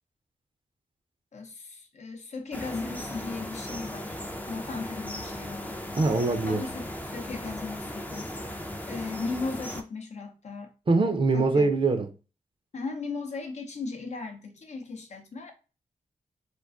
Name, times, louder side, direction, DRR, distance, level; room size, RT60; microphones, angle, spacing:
voice 1, 1.3-4.2 4.5-5.8 6.5-8.3 8.9-10.7 11.3-11.7 12.7-15.5, left 4 dB, 55° left, 0.6 m, -37 dB
sound 1, 2.5-9.8, left 1 dB, 10° left, 0.5 m, -37 dB
voice 2, 5.9-6.6 10.9-12.1, right 3 dB, 40° right, 0.5 m, -23 dB
2.3 x 2.3 x 2.4 m
cardioid pair, 45°, 14 cm